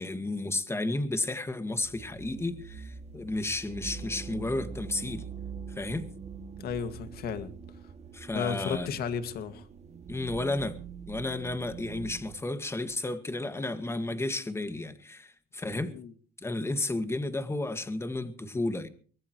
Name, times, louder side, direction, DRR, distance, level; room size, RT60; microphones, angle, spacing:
voice 1, 0.0-5.3 5.7-6.1 8.1-9.0 10.1-10.8 11.1-16.0 16.4-18.9, left 2 dB, 15° left, 2.0 m, -32 dB
sound 1, 1.8-12.4, right 6 dB, 40° right, 2.3 m, -43 dB
voice 2, 6.6-7.5 8.3-9.7 15.9-16.1, left 7 dB, 65° left, 2.2 m, -33 dB
23.5 x 19.5 x 3.2 m
cardioid pair, 110°, 17 cm